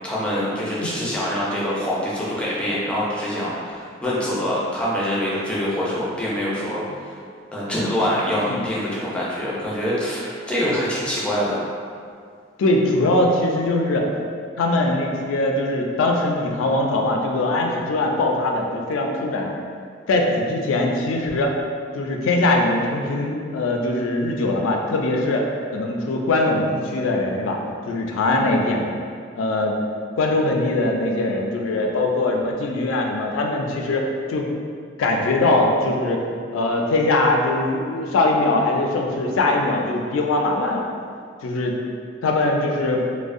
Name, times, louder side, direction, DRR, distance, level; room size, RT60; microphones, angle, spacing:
voice 1, 0.0-7.2 7.5-11.7, equal, 5° left, -7 dB, 0.4 m, -25 dB
voice 2, 12.6-14.1 14.6-19.5 20.1-21.5 21.9-25.4 25.7-27.6 27.9-28.8 29.4-29.8 30.2-34.5 35.0-36.2 36.5-40.9 41.4-41.8 42.2-43.0, left 2 dB, 85° left, 1 dB, 0.3 m, -21 dB
2.5 x 2.0 x 2.4 m, 2.2 s
head